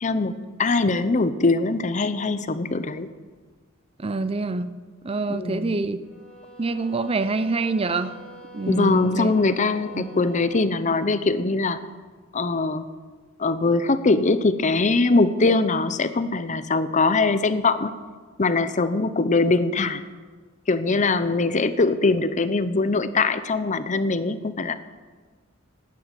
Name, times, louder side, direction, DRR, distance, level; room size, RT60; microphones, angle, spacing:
voice 1, 0.0-3.1 5.3-5.8 8.7-11.8 12.3-12.8 13.4-17.9 18.4-20.0 20.7-24.7, left 3 dB, 35° left, 12 dB, 0.7 m, -22 dB
voice 2, 4.0-4.7 5.0-6.0 6.6-8.2 8.5-9.3 9.9-10.1, right 3 dB, 30° right, 12 dB, 0.5 m, -26 dB
sound 1, 6.0-10.7, right 1 dB, 5° left, 5.0 m, -45 dB
12.0 x 9.4 x 9.0 m, 1.4 s
head